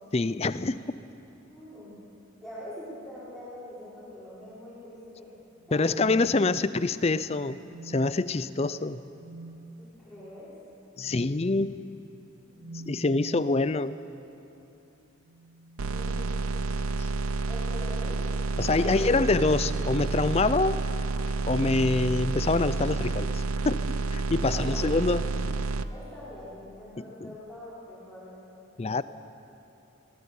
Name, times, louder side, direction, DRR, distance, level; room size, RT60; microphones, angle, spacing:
voice 1, 0.1-0.8 5.7-7.6 7.8-9.0 11.0-11.8 12.7-13.9 17.0-17.1 18.6-20.8 21.5-23.8 24.1-25.6 27.0-27.1 28.8-29.0, left 3 dB, 30° left, 15 dB, 0.5 m, -26 dB
voice 2, 1.5-2.0 2.4-5.3 5.7-5.9 9.8-10.5 12.4-12.5 15.9-16.7 17.5-18.2 18.8-19.1 24.4-24.8 25.9-28.4, left 1 dB, ahead, -12 dB, 5.2 m, -43 dB
sound 1, 5.6-7.0 7.6-8.3 9.2-9.6 11.0-11.4 12.6-13.6 15.1-16.9 18.0-18.5 19.7-19.9, right 2 dB, 60° right, 1.2 m, -46 dB
sound 2, 15.8-25.8, right 3 dB, 90° right, 0.7 m, -29 dB
23.5 x 17.5 x 7.1 m, 2.9 s
head